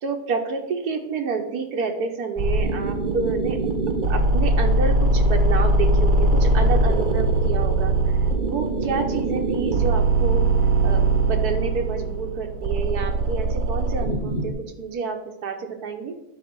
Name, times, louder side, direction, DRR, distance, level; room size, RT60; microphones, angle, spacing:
voice 1, 0.0-3.7 4.1-10.5 10.8-16.2, right 5 dB, 75° right, 4 dB, 1.6 m, -29 dB
sound 1, 2.4-14.5, right 2 dB, 40° right, 0.8 m, -21 dB
10.5 x 4.4 x 5.4 m, 0.87 s
omnidirectional pair, 1.7 m